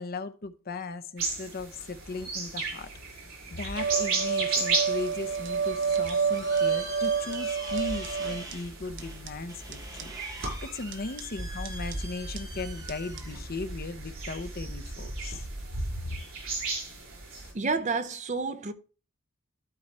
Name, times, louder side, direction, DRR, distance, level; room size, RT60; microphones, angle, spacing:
voice 1, 0.0-15.4, left 3 dB, 45° left, 0.8 m, -38 dB
sound 1, 1.2-17.5, right 3 dB, 75° right, 5.9 m, -36 dB
sound 2, 3.8-8.5 9.0-9.1 9.3-9.4 9.7-9.8 10.0-10.1 10.4-10.5 10.9-11.2 11.7-11.9 12.4-12.5 12.9-13.0 13.2-13.3, right 6 dB, 60° right, 0.9 m, -29 dB
sound 3, 5.7-14.8, right 1 dB, 15° right, 1.4 m, -45 dB
voice 2, 17.5-18.7, right 4 dB, 35° right, 0.6 m, -29 dB
12.5 x 4.7 x 4.2 m
head